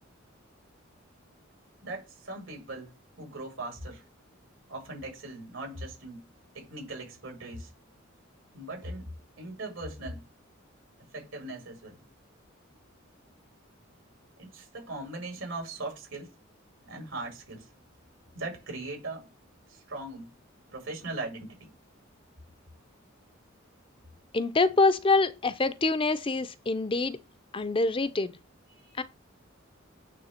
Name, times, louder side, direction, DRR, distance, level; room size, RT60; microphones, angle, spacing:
voice 1, 1.8-2.9 3.2-4.0 4.7-6.3 6.5-7.7 8.5-9.1 9.4-10.2 11.1-12.0 14.4-16.3 16.8-17.7 18.3-19.3 19.7-20.3 20.7-21.7 28.7-29.0, right 2 dB, 75° right, 4.7 m, -39 dB
voice 2, 24.3-27.2 27.5-28.3 29.0-29.1, left 3 dB, 25° left, 0.6 m, -25 dB
9.4 x 3.4 x 5.7 m
head